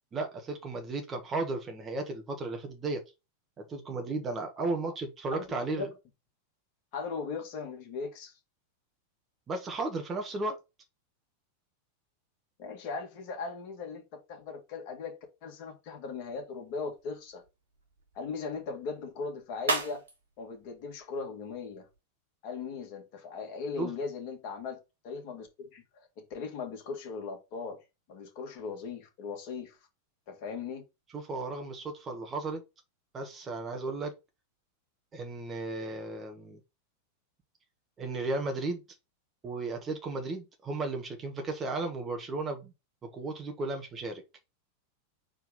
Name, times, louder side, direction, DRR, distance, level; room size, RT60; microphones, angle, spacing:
voice 1, 0.1-3.0 3.6-5.9 9.5-10.6 23.8-23.9 31.1-32.6 33.1-34.1 35.1-36.6 38.0-38.8 39.4-42.7 43.0-44.2, right 3 dB, 20° right, 1.2 m, -34 dB
voice 2, 6.9-8.4 12.6-17.4 18.1-20.0 20.4-21.9 22.4-24.8 25.0-27.8 28.1-29.8 30.3-30.8, left 5 dB, 45° left, 2.4 m, -38 dB
sound 1, 16.0-22.0, right 3 dB, 70° right, 1.6 m, -40 dB
4.6 x 3.9 x 5.3 m
figure-of-eight pair, 90°, 0 cm